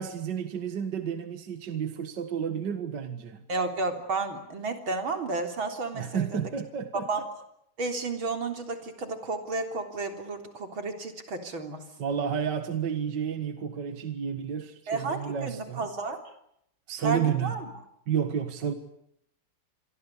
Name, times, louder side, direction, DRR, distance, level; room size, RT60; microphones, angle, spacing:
voice 1, 0.0-3.4 5.9-7.1 12.0-15.9 16.9-17.6 18.1-18.7, right 8 dB, 60° right, 9 dB, 2.3 m, -31 dB
voice 2, 3.5-6.5 7.1-7.2 7.8-11.8 14.9-16.2 17.0-17.7, right 3 dB, 85° right, 6 dB, 4.4 m, -32 dB
27.5 x 23.0 x 8.4 m, 0.75 s
omnidirectional pair, 2.2 m